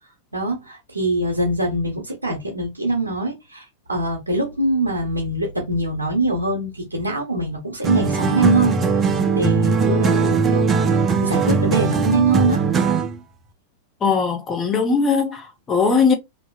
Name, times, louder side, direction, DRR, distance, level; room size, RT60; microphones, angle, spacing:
voice 1, 0.3-8.8 9.3-12.6, right 2 dB, 85° right, 0.7 m, -23 dB
sound 1, 7.8-13.2, right 5 dB, 25° right, 0.5 m, -19 dB
voice 2, 14.0-16.1, left 5 dB, 20° left, 0.8 m, -19 dB
2.8 x 2.5 x 2.3 m
figure-of-eight pair, 90°, 0 cm